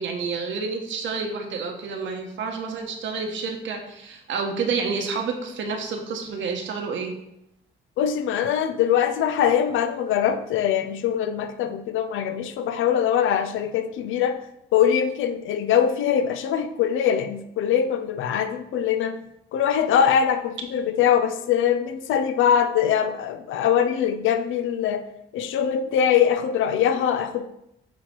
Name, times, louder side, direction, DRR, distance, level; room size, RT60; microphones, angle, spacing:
voice 1, 0.0-7.1, right 5 dB, 75° right, 3 dB, 1.2 m, -29 dB
voice 2, 8.0-14.4 14.7-19.2 19.5-25.0 25.3-27.4, left 8 dB, 80° left, 10 dB, 0.6 m, -22 dB
8.6 x 3.1 x 4.4 m, 0.80 s
cardioid pair, 90°, 20 cm